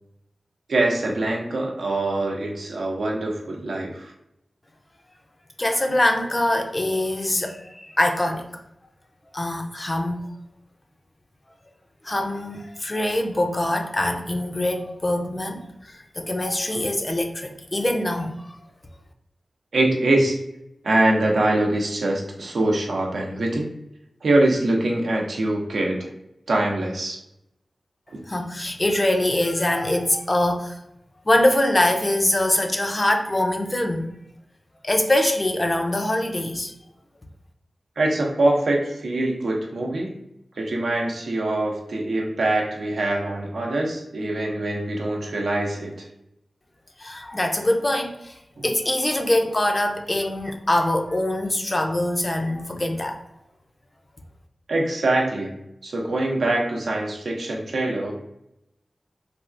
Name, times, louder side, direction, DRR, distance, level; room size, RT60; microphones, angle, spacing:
voice 1, 0.7-4.1 19.7-20.4 20.8-23.7 24.2-26.1 26.5-27.2 38.0-40.1 40.6-46.1 48.6-48.7 54.7-55.5 55.8-58.1, right 2 dB, 85° right, -1 dB, 0.6 m, -23 dB
voice 2, 5.6-8.5 9.3-10.3 12.0-18.6 28.3-30.8 31.3-34.1 34.8-36.7 47.0-53.2, left 1 dB, 30° left, 3 dB, 0.4 m, -23 dB
3.3 x 2.3 x 2.5 m, 0.84 s
cardioid pair, 50°, 0 cm